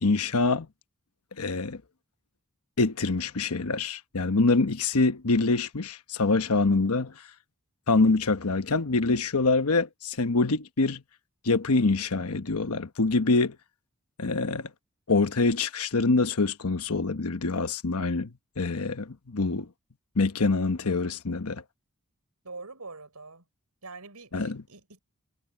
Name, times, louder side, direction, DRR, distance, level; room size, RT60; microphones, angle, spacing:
voice 1, 0.0-0.7 1.4-1.8 2.8-7.1 7.9-11.0 11.4-13.6 14.2-14.7 15.1-18.3 18.6-19.7 20.2-21.6 24.3-24.6, left 3 dB, 75° left, 1.1 m, -25 dB
voice 2, 22.4-23.4 23.8-25.0, right 3 dB, 85° right, 5.9 m, -44 dB
head